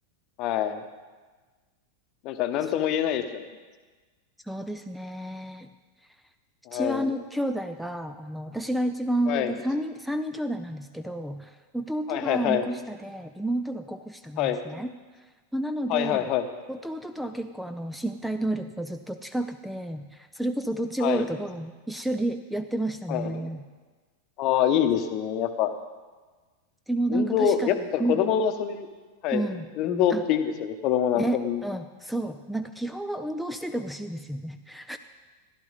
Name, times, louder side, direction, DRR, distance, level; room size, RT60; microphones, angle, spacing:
voice 1, 0.4-0.8 2.2-3.4 6.7-7.1 9.3-9.5 12.1-12.6 14.4-14.6 15.9-16.5 21.0-21.3 23.1-23.5 24.4-25.7 27.1-28.9 29.2-29.4 29.8-31.6, left 9 dB, 40° left, 8 dB, 1.0 m, -25 dB
voice 2, 4.5-5.7 6.7-14.9 15.5-16.3 16.7-23.6 26.9-28.2 29.3-29.7 30.1-30.2 31.2-35.0, right 1 dB, ahead, 9 dB, 0.5 m, -31 dB
15.0 x 11.5 x 4.1 m, 1.3 s
figure-of-eight pair, 90°, 0 cm